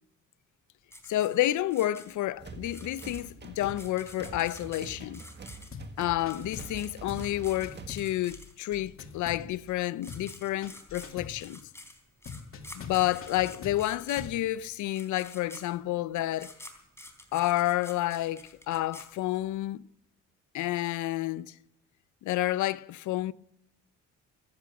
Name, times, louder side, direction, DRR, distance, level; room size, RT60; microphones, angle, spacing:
sound 1, 0.9-8.8 9.7-9.8 10.0-19.7, left 1 dB, 10° left, 3.7 m, -49 dB
voice 1, 1.1-5.2 6.0-11.6 12.7-16.5 17.3-19.8 20.5-21.5 22.2-23.3, left 15 dB, 75° left, 0.6 m, -30 dB
sound 2, 2.4-8.0, right 3 dB, 35° right, 1.7 m, -45 dB
sound 3, 5.7-6.0 6.3-6.8 7.1-7.3 7.6-9.8 10.1-10.3 10.6-11.4 12.3-14.4, left 5 dB, 45° left, 2.5 m, -43 dB
15.5 x 14.5 x 5.9 m
cardioid pair, 90°, 30 cm